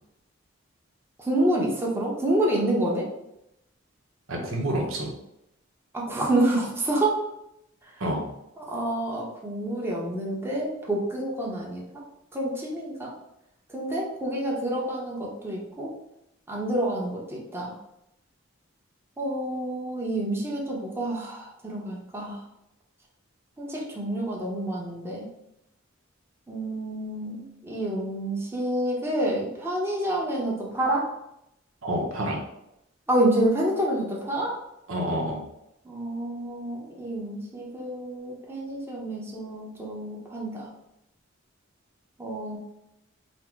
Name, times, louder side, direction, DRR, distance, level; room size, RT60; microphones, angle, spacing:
voice 1, 1.3-3.0 5.9-7.2 8.7-11.9 12.3-13.1 13.7-15.9 16.5-17.7 19.2-22.4 23.6-25.2 26.5-31.1 33.1-34.5 35.9-40.6 42.2-42.6, right 1 dB, 10° right, -3 dB, 0.8 m, -28 dB
voice 2, 4.3-5.1 8.0-8.3 31.8-32.4 34.9-35.4, right 1 dB, 85° right, 0 dB, 0.9 m, -28 dB
4.2 x 2.0 x 4.4 m, 0.83 s
head